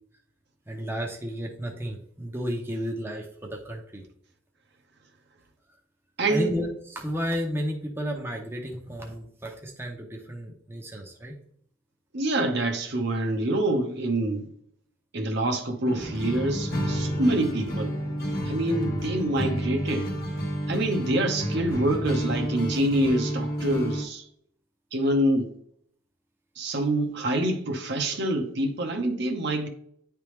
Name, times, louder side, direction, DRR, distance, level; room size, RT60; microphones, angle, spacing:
voice 1, 0.7-4.0 6.3-11.3, equal, 10° right, 0.8 m, -32 dB
voice 2, 6.2-6.5 12.1-14.5 15.1-18.0 18.5-20.1 20.7-24.2 24.9-25.5 26.6-29.7, right 1 dB, 50° right, 0.8 m, -26 dB
sound 1, 15.8-24.0, equal, 45° left, 1.2 m, -30 dB
9.5 x 3.4 x 3.2 m
head